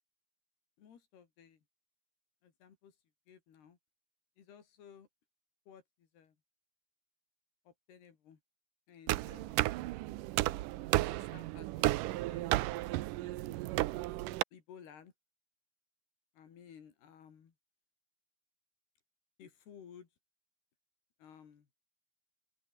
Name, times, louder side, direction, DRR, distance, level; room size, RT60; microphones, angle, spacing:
voice 1, 0.8-1.6 2.4-2.9 3.3-3.8 4.4-5.1 5.7-6.3 7.7-8.4 8.9-9.6 11.1-12.9 13.2-13.6 14.5-15.1 16.4-17.5 19.4-20.1 21.2-21.7, left 8 dB, 75° left, 5.2 m, -57 dB
sound 1, 9.1-14.4, right 18 dB, 85° right, 1.8 m, -33 dB
open air
omnidirectional pair, 4.7 m